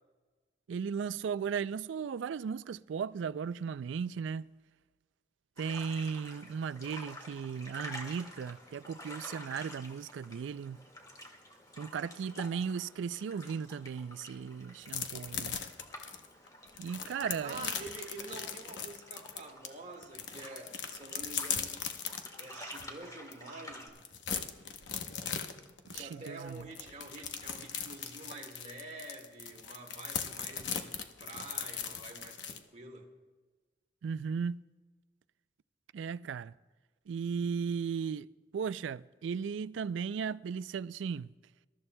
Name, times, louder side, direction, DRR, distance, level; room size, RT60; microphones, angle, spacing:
voice 1, 0.7-4.5 5.6-10.8 11.8-15.6 16.8-17.7 25.8-26.7 34.0-34.7 35.9-36.5 37.1-41.3, right 6 dB, 75° right, 0.3 m, -36 dB
sound 1, 5.6-23.9, left 1 dB, 20° left, 1.9 m, -50 dB
sound 2, 14.9-19.7 20.0-22.9 23.3-23.4 23.7-32.6, left 7 dB, 65° left, 0.9 m, -39 dB
voice 2, 17.4-21.8 22.4-24.0 26.0-33.1, right 2 dB, 40° right, 1.8 m, -47 dB
26.0 x 13.5 x 2.2 m
head